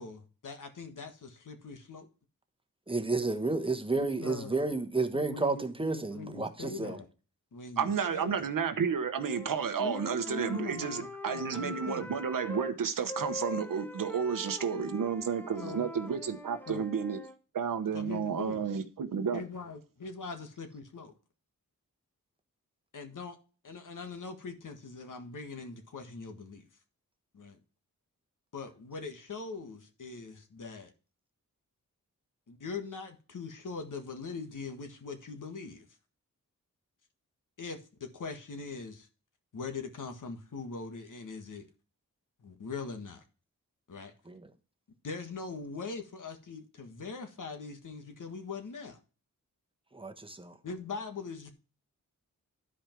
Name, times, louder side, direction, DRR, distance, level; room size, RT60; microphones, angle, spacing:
voice 1, 0.0-2.1 4.0-4.6 5.1-7.1 7.5-8.3 9.8-12.1 15.6-15.9 16.7-16.8 17.9-18.7 19.3-21.1 22.9-23.4 23.6-26.6 27.3-27.6 28.5-30.9 32.5-35.9 37.6-39.1 39.5-41.7 42.4-43.2 43.9-44.1 45.0-49.0 50.6-51.5, left 4 dB, 70° left, 1.7 m, -42 dB
voice 2, 2.9-7.0 44.2-44.5 49.9-50.6, right 3 dB, 15° right, 1.1 m, -31 dB
voice 3, 7.8-17.2 17.5-19.4, right 6 dB, 80° right, 1.0 m, -31 dB
Wind instrument woodwind instrument, 9.1-12.7 13.1-17.3, left 1 dB, 5° left, 1.0 m, -43 dB
11.5 x 5.2 x 4.5 m
wide cardioid pair, 85°, 33 cm